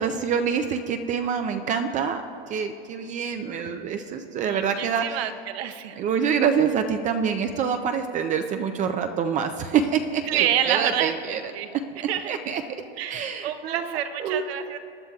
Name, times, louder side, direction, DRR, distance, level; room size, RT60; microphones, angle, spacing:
voice 1, 0.0-2.2 2.5-5.2 6.0-11.4 11.7-12.6 13.1-14.4, right 7 dB, 25° right, 7 dB, 0.4 m, -26 dB
voice 2, 4.4-6.0 10.3-11.7 12.1-12.4 13.0-14.8, right 10 dB, 65° right, 8 dB, 0.9 m, -28 dB
22.5 x 11.0 x 2.3 m, 2.5 s
supercardioid pair, 135°, 34 cm